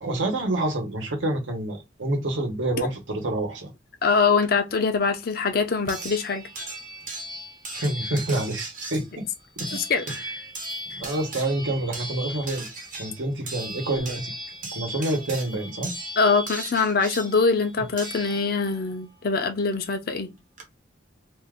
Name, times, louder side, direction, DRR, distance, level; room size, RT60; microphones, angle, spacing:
voice 1, 0.0-3.7 7.7-9.2 9.6-9.8 10.1-10.2 11.0-12.7 13.0-14.3 14.7-15.9, right 1 dB, 80° right, 1.0 m, -27 dB
voice 2, 4.0-6.4 9.7-10.0 16.2-20.3, left 4 dB, 50° left, 0.5 m, -23 dB
sound 1, 4.4-4.5 5.9-18.9 20.1-20.2 20.6-20.7, right 1 dB, 45° right, 0.9 m, -37 dB
2.6 x 2.4 x 3.5 m
head